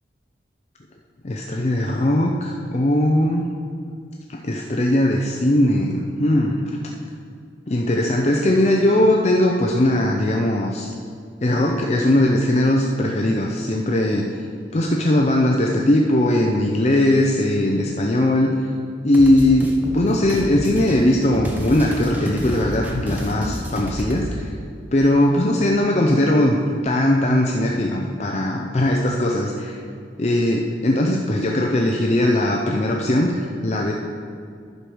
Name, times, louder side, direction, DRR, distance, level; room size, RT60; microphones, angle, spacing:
voice 1, 1.2-3.5 4.3-6.7 7.7-10.9 11.4-14.3 14.7-18.6 19.0-24.5 24.9-26.6 26.8-29.8 30.2-33.9, left 1 dB, 35° left, 0 dB, 0.5 m, -19 dB
sound 1, 19.1-24.3, equal, 10° right, 0.9 m, -30 dB
11.0 x 4.9 x 6.2 m, 2.4 s
head